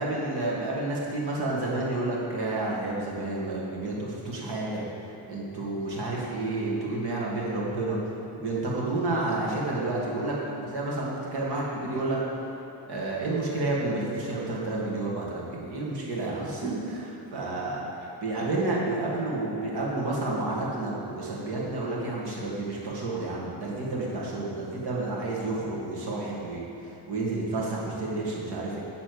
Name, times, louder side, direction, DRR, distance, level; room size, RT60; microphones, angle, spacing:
voice 1, 0.0-4.9 5.3-8.0 8.3-10.4 10.7-12.2 12.9-17.8 18.2-28.8, right 2 dB, 70° right, -4 dB, 2.3 m, -30 dB
12.0 x 4.1 x 8.0 m, 2.8 s
wide cardioid pair, 145°, 40 cm